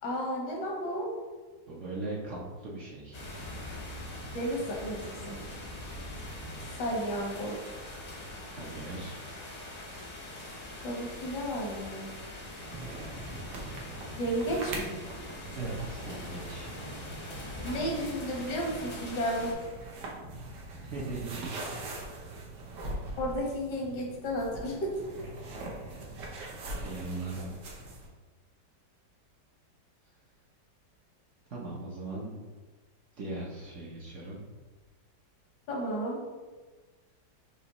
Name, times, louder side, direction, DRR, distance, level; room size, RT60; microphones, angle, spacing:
voice 1, 0.0-1.1 4.3-5.4 6.8-7.6 10.8-12.1 14.2-14.9 17.6-19.5 23.2-24.9 35.7-36.2, equal, 80° left, -1 dB, 1.6 m, -33 dB
voice 2, 1.7-3.2 8.4-9.2 15.5-16.7 20.8-21.6 26.8-27.5 31.5-32.5 33.2-34.4, right 2 dB, 55° right, -4 dB, 0.9 m, -39 dB
Loudest Thunderclap ever, 3.1-19.5, left 1 dB, 35° left, 0.6 m, -42 dB
sound 1, 12.7-28.1, right 2 dB, 85° right, 1.4 m, -42 dB
5.1 x 3.1 x 2.9 m, 1.3 s
omnidirectional pair, 1.8 m